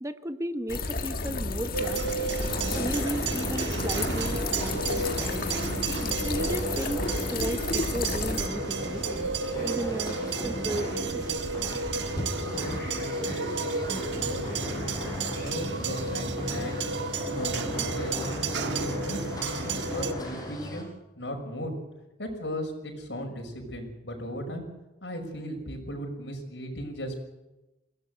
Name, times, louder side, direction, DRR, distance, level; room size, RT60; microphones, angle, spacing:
voice 1, 0.0-2.3 2.7-5.7 6.2-9.3 9.6-11.4, right 1 dB, 20° right, 10 dB, 1.0 m, -35 dB
sound 1, 0.7-8.5, left 3 dB, 55° left, 1.7 m, -32 dB
sound 2, 1.7-20.1, right 4 dB, 85° right, 1.4 m, -32 dB
sound 3, 2.3-20.8, equal, 20° left, 5.4 m, -36 dB
voice 2, 12.3-14.9 15.4-16.9 17.3-18.4 18.8-20.9 21.2-21.7 22.2-24.6 25.0-27.1, equal, 85° left, 2 dB, 6.0 m, -37 dB
22.5 x 17.0 x 8.0 m, 1.0 s
head